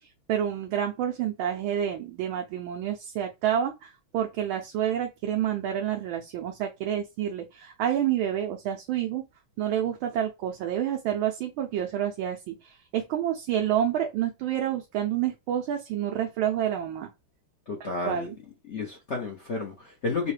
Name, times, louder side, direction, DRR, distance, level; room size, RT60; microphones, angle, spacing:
voice 1, 0.0-9.2 9.6-17.1 18.0-18.4, right 10 dB, 75° right, 1.4 m, -29 dB
voice 2, 17.7-18.3 18.7-20.3, left 4 dB, 65° left, 0.7 m, -31 dB
5.4 x 2.2 x 3.2 m
omnidirectional pair, 2.3 m